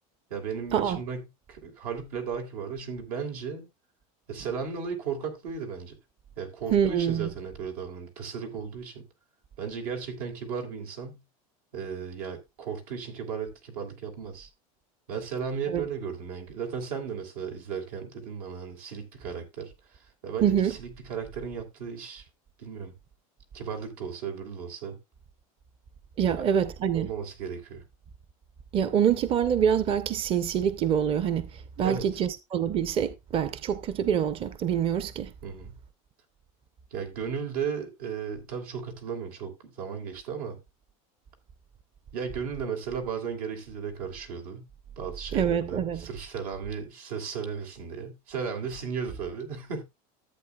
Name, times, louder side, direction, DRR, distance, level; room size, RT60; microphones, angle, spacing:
voice 1, 0.3-1.2 1.5-3.7 4.3-5.9 6.4-9.0 9.6-11.2 11.7-14.5 15.1-22.2 22.6-22.9 23.5-25.0 26.3-26.4 26.9-27.8 31.8-32.1 35.4-35.7 36.9-40.6 42.1-44.6 45.0-49.8, right 6 dB, 85° right, 3.2 m, -35 dB
voice 2, 6.7-7.3 15.7-15.8 20.4-20.8 26.2-27.1 28.7-35.3 45.3-46.1, right 8 dB, 30° right, 0.6 m, -26 dB
14.0 x 8.1 x 2.3 m
supercardioid pair, 135°, 19 cm